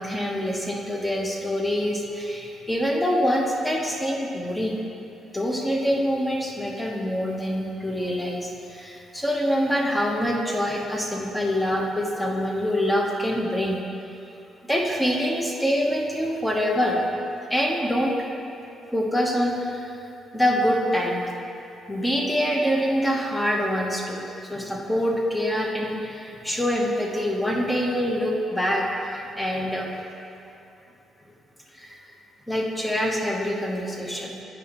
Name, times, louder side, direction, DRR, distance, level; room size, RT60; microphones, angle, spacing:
voice 1, 0.0-4.8 5.3-13.8 14.7-17.0 17.5-18.3 18.9-19.9 20.3-21.3 21.9-29.9 31.7-32.1 32.5-34.4, equal, 10° left, -1 dB, 0.9 m, -25 dB
9.1 x 5.1 x 3.0 m, 2.8 s
cardioid pair, 90°, 0 cm